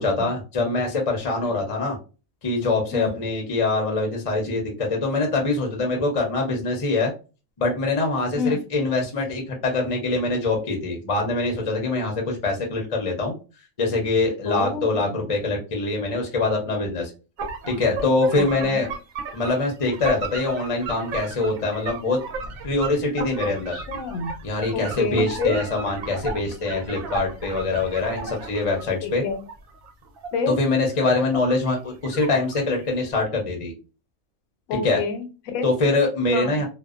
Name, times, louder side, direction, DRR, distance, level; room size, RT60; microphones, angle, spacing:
voice 1, 0.0-2.0 2.4-7.1 7.6-13.4 13.8-17.1 17.7-18.9 19.3-22.2 22.6-23.7 24.4-29.2 30.5-33.7 34.7-35.0 35.6-36.6, left 3 dB, 40° left, 1 dB, 0.5 m, -24 dB
voice 2, 14.4-15.2 18.3-18.9 23.4-24.3 24.7-25.6 29.0-29.4 30.3-30.6 34.7-35.6 36.3-36.6, left 5 dB, 90° left, 6 dB, 1.0 m, -29 dB
sound 1, 17.4-28.8 29.3-31.8 32.0-32.9, right 4 dB, 80° right, 1.1 m, -35 dB
2.6 x 2.1 x 2.3 m, 0.32 s
omnidirectional pair, 1.4 m